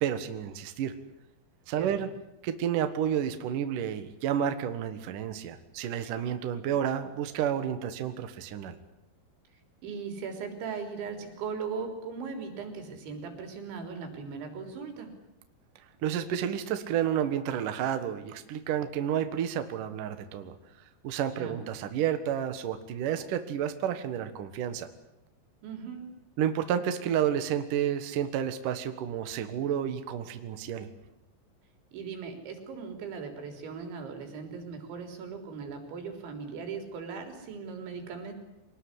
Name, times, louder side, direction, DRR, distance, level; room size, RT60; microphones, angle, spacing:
voice 1, 0.0-0.9 1.7-2.1 2.4-8.8 16.0-20.5 21.0-24.9 26.4-30.9, right 9 dB, 60° right, 9 dB, 2.6 m, -30 dB
voice 2, 9.8-15.1 21.4-21.6 25.6-26.1 31.9-38.3, right 5 dB, 85° right, 5 dB, 6.1 m, -38 dB
24.0 x 20.0 x 10.0 m, 0.87 s
omnidirectional pair, 5.2 m